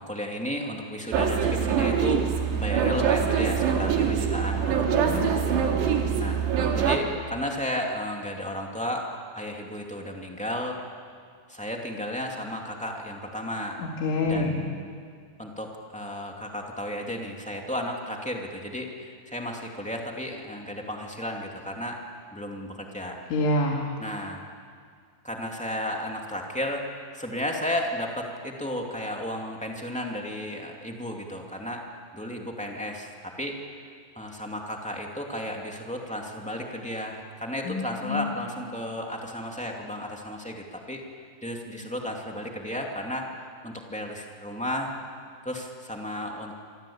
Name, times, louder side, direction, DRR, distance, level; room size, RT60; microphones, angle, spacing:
voice 1, 0.0-2.2 2.5-5.6 6.2-6.4 6.7-10.8 11.5-13.8 14.2-14.8 15.4-22.0 22.3-23.2 24.0-24.4 25.2-26.8 27.1-31.8 32.1-33.6 34.1-41.0 41.4-43.3 43.6-44.9 45.4-46.5, equal, 10° left, 0 dB, 0.4 m, -33 dB
sound 1, 1.1-7.0, right 7 dB, 70° right, 4.2 m, -24 dB
voice 2, 4.8-5.3 13.8-14.5 23.3-23.8 37.7-38.3, left 2 dB, 85° left, 0 dB, 4.7 m, -27 dB
26.5 x 25.5 x 8.8 m, 2.1 s
omnidirectional pair, 5.3 m